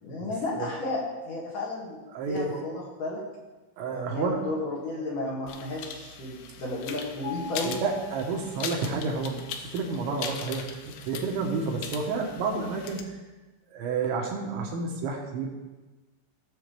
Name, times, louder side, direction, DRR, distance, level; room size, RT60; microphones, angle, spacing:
voice 1, 0.0-3.2 3.9-7.8, left 2 dB, 50° left, -6 dB, 3.2 m, -33 dB
voice 2, 2.1-2.6 3.8-4.4 7.7-13.2 13.7-15.5, right 4 dB, 80° right, 0 dB, 3.4 m, -30 dB
sound 1, 5.5-13.0, left 6 dB, 80° left, 2.8 m, -40 dB
Mallet percussion, 7.2-9.2, left 6 dB, 50° right, 1.7 m, -42 dB
17.0 x 7.0 x 3.4 m, 1.2 s
omnidirectional pair, 5.5 m